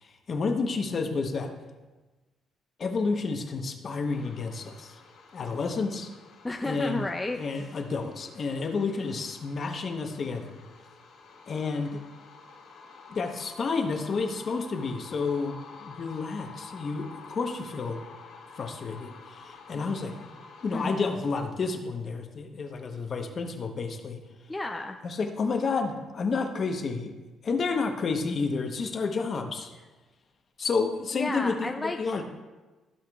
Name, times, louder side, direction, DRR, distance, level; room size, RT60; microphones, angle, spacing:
voice 1, 0.0-1.5 2.8-5.0 5.3-6.1 6.6-7.0 7.4-10.6 11.5-12.0 13.1-18.0 18.6-20.3 20.6-24.2 25.0-27.1 27.4-29.7 30.6-32.2, left 4 dB, 40° left, 5 dB, 0.9 m, -30 dB
sound 1, 4.1-21.5, left 4 dB, 85° left, 2.0 m, -49 dB
voice 2, 6.4-7.7 20.7-21.2 24.5-25.0 31.1-32.2, left 2 dB, 15° left, 2 dB, 0.4 m, -33 dB
15.0 x 5.7 x 2.3 m, 1.2 s
cardioid pair, 120°, 0 cm